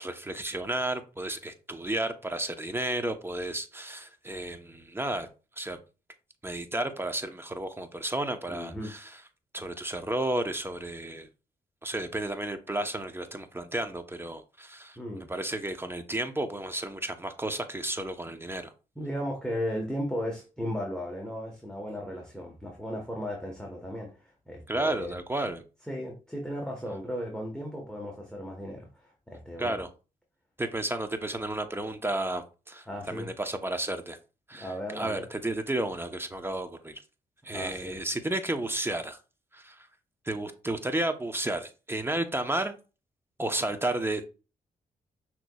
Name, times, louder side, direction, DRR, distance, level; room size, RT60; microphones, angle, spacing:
voice 1, 0.0-5.3 5.6-5.8 6.4-9.1 9.5-11.3 11.8-18.7 24.7-25.6 29.6-29.9 30.6-34.2 34.5-37.0 37.4-39.2 39.5-39.9 40.2-42.7 43.4-44.3, right 1 dB, 15° right, 0.9 m, -32 dB
voice 2, 8.5-8.9 15.0-15.3 18.9-25.2 25.9-29.8 32.9-33.3 34.5-35.2 37.5-38.0, equal, 5° left, 1.2 m, -36 dB
6.1 x 3.0 x 2.3 m
supercardioid pair, 45°, 16 cm